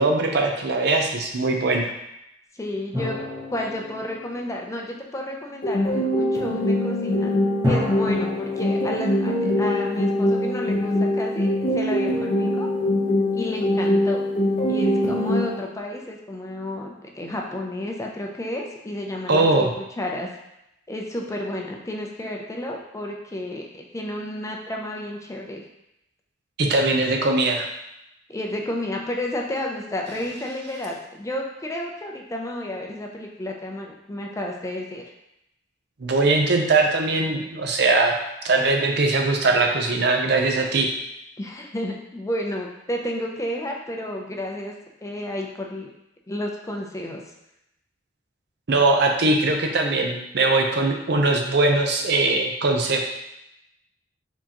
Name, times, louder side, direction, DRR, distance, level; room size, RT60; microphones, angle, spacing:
voice 1, 0.0-1.9 19.3-19.7 26.6-27.7 36.0-38.1 38.4-40.9 48.7-53.0, right 2 dB, 65° right, 3 dB, 0.6 m, -21 dB
voice 2, 2.5-3.2 3.5-7.3 7.7-12.7 13.3-14.2 14.7-20.3 20.9-25.6 28.3-35.1 41.4-44.7 45.0-45.9 46.3-47.2, left 1 dB, 15° left, 0 dB, 0.5 m, -31 dB
sound 1, 2.9-5.3 7.6-10.5, left 1 dB, 20° right, 1.5 m, -31 dB
sound 2, 5.6-15.6, left 1 dB, 45° left, 0.8 m, -23 dB
4.6 x 3.7 x 2.9 m, 0.85 s
head